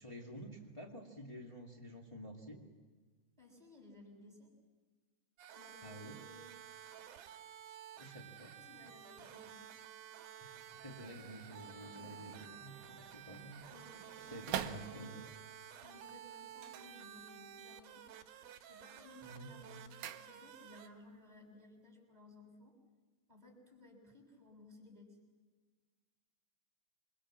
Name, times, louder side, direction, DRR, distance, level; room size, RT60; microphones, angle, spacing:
voice 1, 0.0-2.6 5.8-6.2 8.0-8.5 10.4-13.6 14.2-15.1 19.2-19.5, equal, 30° left, -2 dB, 0.5 m, -50 dB
voice 2, 3.4-4.5 5.5-6.5 8.5-9.7 13.7-18.1 18.7-22.8 23.3-25.2, left 2 dB, 10° right, 0 dB, 6.3 m, -59 dB
sound 1, 5.4-20.9, right 10 dB, 65° right, 3.1 m, -53 dB
sound 2, 10.4-15.4 16.5-17.6 17.9-18.4 18.8-20.8 21.1-21.2, right 10 dB, 80° right, 1.7 m, -47 dB
27.5 x 24.0 x 7.5 m, 1.4 s
omnidirectional pair, 5.2 m